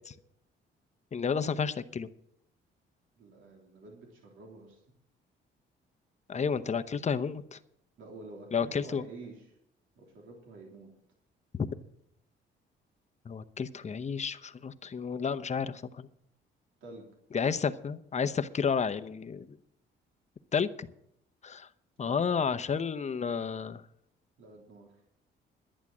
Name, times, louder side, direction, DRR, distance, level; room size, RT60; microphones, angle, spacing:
voice 1, 1.1-2.1 6.3-7.6 8.5-9.0 11.5-11.7 13.2-16.1 17.3-19.6 20.5-20.9 21.4-21.7 22.0-23.8, left 6 dB, 35° left, 12 dB, 0.8 m, -31 dB
voice 2, 3.2-4.8 8.0-9.6 10.0-10.9 16.8-17.1 22.0-22.5 24.4-24.9, right 2 dB, 80° right, 0 dB, 3.3 m, -49 dB
11.0 x 10.5 x 6.2 m, 0.74 s
cardioid pair, 90°, 20 cm